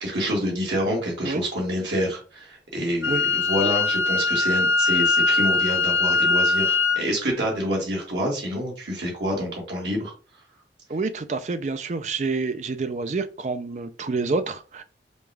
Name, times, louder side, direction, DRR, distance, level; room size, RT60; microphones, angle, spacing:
voice 1, 0.0-10.1, equal, 85° right, 1.7 m, -27 dB
Wind instrument woodwind instrument, 3.0-7.0, left 4 dB, 85° left, 0.7 m, -21 dB
voice 2, 10.9-14.8, right 3 dB, 40° right, 0.4 m, -28 dB
5.2 x 2.3 x 3.3 m
head